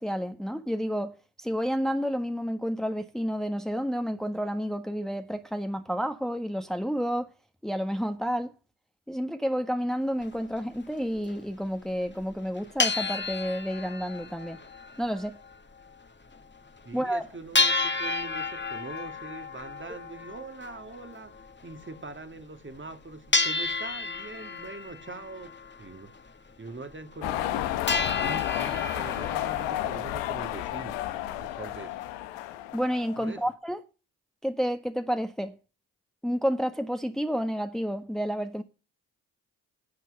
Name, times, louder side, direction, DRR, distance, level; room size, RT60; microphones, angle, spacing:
voice 1, 0.0-7.3 7.6-8.5 9.1-14.6 15.0-15.4 16.9-17.3 32.7-33.8 34.4-35.5 36.2-38.6, equal, ahead, 1.4 m, -30 dB
sound 1, 10.2-10.3 10.9-11.0 11.2-11.3 12.1-12.2 12.4-15.6 15.8-15.9 16.3-16.4 16.8-16.9 17.5-22.1 22.8-22.9 23.3-26.3 26.7-26.8 27.1-27.6 27.9-29.7, left 3 dB, 25° left, 1.8 m, -31 dB
voice 2, 16.9-26.2 26.6-27.8 28.1-31.0 31.4-32.1 33.2-33.4, right 3 dB, 25° right, 2.1 m, -42 dB
sound 2, 27.2-33.4, left 13 dB, 85° left, 1.2 m, -31 dB
10.5 x 8.1 x 6.5 m
hypercardioid pair, 45°, 43 cm